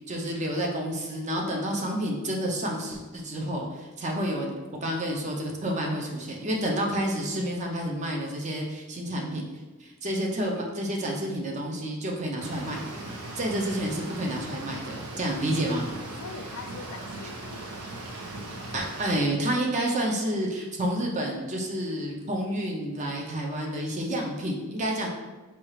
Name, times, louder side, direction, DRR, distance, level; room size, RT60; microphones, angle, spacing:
voice 1, 0.1-4.5 4.8-9.4 9.8-12.8 13.3-15.9 18.7-25.1, right 1 dB, 30° right, 0 dB, 0.5 m, -29 dB
sound 1, 12.4-19.2, right 2 dB, 90° right, 0.7 m, -38 dB
voice 2, 16.2-17.6 25.0-25.1, left 6 dB, 75° left, 6 dB, 0.3 m, -42 dB
4.2 x 2.4 x 3.1 m, 1.2 s
head